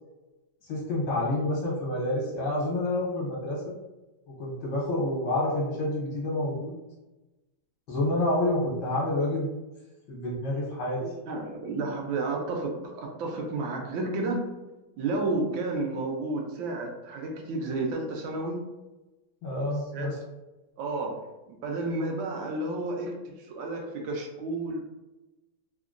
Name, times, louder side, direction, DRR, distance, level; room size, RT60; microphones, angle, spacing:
voice 1, 0.7-3.6 4.4-6.8 7.9-9.5 10.1-11.0 19.4-20.2, left 1 dB, 65° left, -5 dB, 1.4 m, -28 dB
voice 2, 11.0-14.5 15.0-18.6 19.9-20.2 20.8-21.2 21.6-24.8, right 2 dB, 80° right, 0 dB, 1.3 m, -31 dB
3.6 x 2.1 x 2.4 m, 1.0 s
omnidirectional pair, 2.1 m